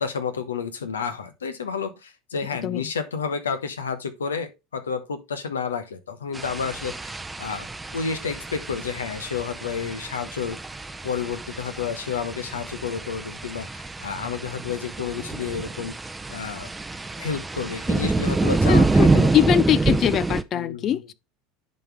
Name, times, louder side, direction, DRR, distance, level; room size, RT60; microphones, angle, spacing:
voice 1, 0.0-7.7 7.9-10.6 11.0-15.9 16.3-16.7 17.2-19.3 20.5-21.0, left 6 dB, 85° left, 1.1 m, -30 dB
sound 1, 6.3-20.4, right 3 dB, 15° right, 0.6 m, -26 dB
voice 2, 18.7-21.1, left 11 dB, 40° left, 0.3 m, -22 dB
10.5 x 4.3 x 3.4 m
hypercardioid pair, 80°, 0 cm